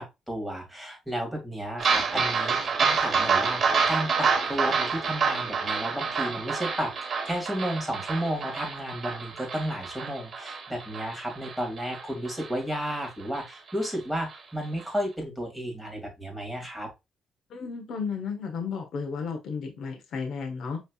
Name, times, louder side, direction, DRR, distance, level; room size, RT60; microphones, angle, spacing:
voice 1, 0.0-16.9, equal, ahead, 0 dB, 2.3 m, -33 dB
sound 1, 1.8-12.5 12.9-13.0 13.4-13.5 13.8-13.9, right 5 dB, 50° right, 1.0 m, -28 dB
voice 2, 17.5-20.8, left 5 dB, 70° left, 3 dB, 1.0 m, -33 dB
5.5 x 3.3 x 2.4 m, 0.23 s
cardioid pair, 90°, 0 cm